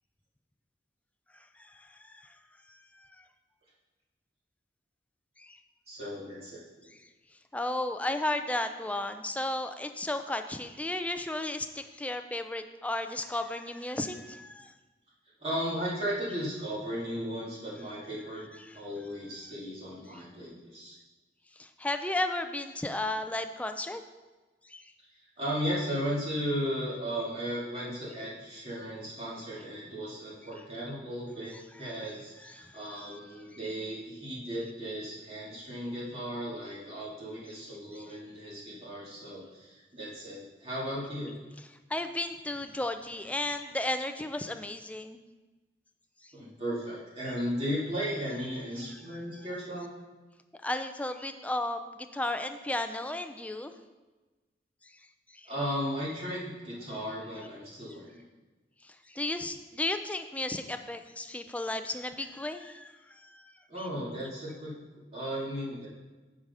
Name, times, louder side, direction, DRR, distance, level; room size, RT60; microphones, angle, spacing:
voice 1, 1.3-2.3 2.7-3.2 5.4-5.6 7.5-14.7 18.6-18.8 20.1-20.2 21.6-24.0 24.6-24.9 32.4-32.8 38.0-38.1 41.9-45.2 46.2-46.3 49.1-49.2 50.6-53.7 54.8-54.9 55.3-55.5 58.8-63.5 63.8-63.9, left 1 dB, 10° left, 8 dB, 0.4 m, -34 dB
voice 2, 5.9-6.9 15.4-18.4 18.7-21.0 25.4-31.5 31.8-41.3 46.3-49.9 55.5-58.2 63.7-64.7 65.1-65.9, equal, 35° right, -7 dB, 2.5 m, -35 dB
9.4 x 4.9 x 5.5 m, 1.2 s
head